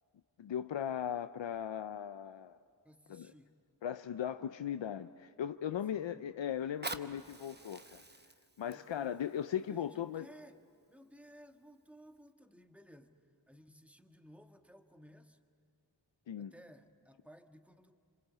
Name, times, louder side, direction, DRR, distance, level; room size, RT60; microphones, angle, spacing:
voice 1, 0.4-2.6 3.1-3.3 3.8-8.0 8.6-10.3 16.3-16.5, left 9 dB, 90° left, 10 dB, 0.6 m, -38 dB
voice 2, 2.8-3.5 5.9-6.3 8.6-10.6 10.9-15.4 16.4-18.0, equal, 5° right, 6 dB, 1.5 m, -58 dB
Fire, 6.6-11.5 12.2-12.3, right 2 dB, 25° right, 1.0 m, -48 dB
27.0 x 26.0 x 8.6 m, 2.3 s
wide cardioid pair, 60°, 44 cm